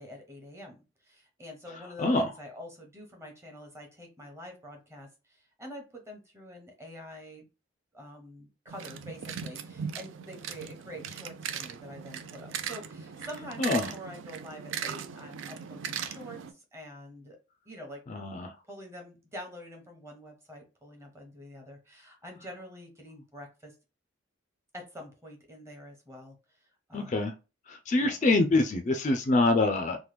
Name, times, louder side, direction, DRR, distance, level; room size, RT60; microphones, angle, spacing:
voice 1, 0.0-7.4 7.9-17.4 17.7-18.0 18.7-23.7 24.7-26.4 26.9-27.2 28.0-28.1, equal, 15° right, 2 dB, 0.9 m, -46 dB
sound 1, 8.7-16.5, right 7 dB, 70° right, 0.4 m, -39 dB
voice 2, 13.6-13.9 18.1-18.5 26.9-27.3 27.7-30.0, left 2 dB, 40° left, 6 dB, 0.4 m, -25 dB
3.0 x 2.1 x 3.3 m, 0.29 s
head